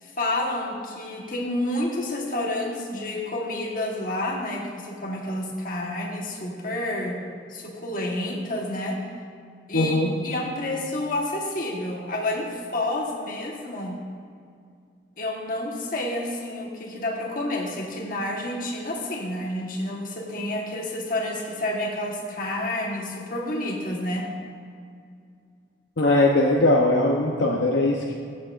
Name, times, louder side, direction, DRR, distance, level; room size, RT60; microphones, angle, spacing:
voice 1, 0.0-7.2 7.5-9.0 9.7-10.0 10.2-14.0 15.2-24.3, left 1 dB, 45° left, -1 dB, 1.3 m, -29 dB
voice 2, 9.7-10.1 26.0-28.1, left 2 dB, 70° left, -1 dB, 0.7 m, -20 dB
14.5 x 7.4 x 2.5 m, 2.3 s
head